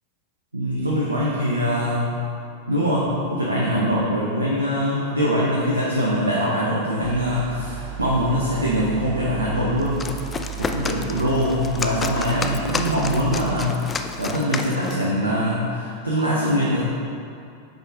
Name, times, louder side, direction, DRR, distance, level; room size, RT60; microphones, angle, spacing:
voice 1, 0.5-2.1 2.7-3.0 3.3-10.3 10.6-13.8 14.2-16.8, equal, 80° right, -6 dB, 1.0 m, -23 dB
sound 1, 7.0-13.7, right 10 dB, 45° right, 0.4 m, -34 dB
sound 2, 9.8-15.1, left 4 dB, 20° left, 0.4 m, -31 dB
7.8 x 5.1 x 3.6 m, 2.5 s
figure-of-eight pair, 90°, 0 cm